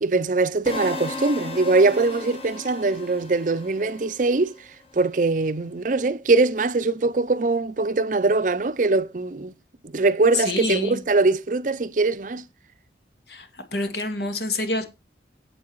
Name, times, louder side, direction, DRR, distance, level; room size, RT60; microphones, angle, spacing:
voice 1, 0.0-4.5 4.9-9.5 9.9-12.4, right 3 dB, 45° right, 0.6 m, -22 dB
sound 1, 0.7-4.7, left 3 dB, 35° left, 1.5 m, -36 dB
voice 2, 10.3-11.0 13.3-14.9, left 2 dB, 65° left, 2.2 m, -27 dB
8.5 x 8.2 x 4.6 m
head